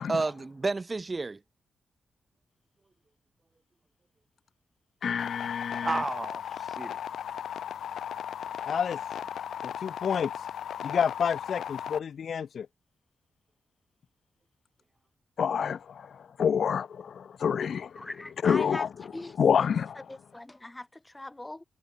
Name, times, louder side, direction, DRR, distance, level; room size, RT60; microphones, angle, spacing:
voice 1, 0.0-1.4 5.8-6.9, right 3 dB, 30° right, 0.7 m, -31 dB
voice 2, 5.0-6.0 8.7-9.0 9.6-10.3 10.8-12.7 15.4-18.0 18.4-18.9 19.4-20.0, left 7 dB, 70° left, 0.4 m, -28 dB
sound 1, 5.2-12.0, left 9 dB, 85° left, 0.8 m, -36 dB
voice 3, 18.0-19.7 20.1-21.6, left 2 dB, 15° left, 4.9 m, -41 dB
cardioid pair, 90°, 0 cm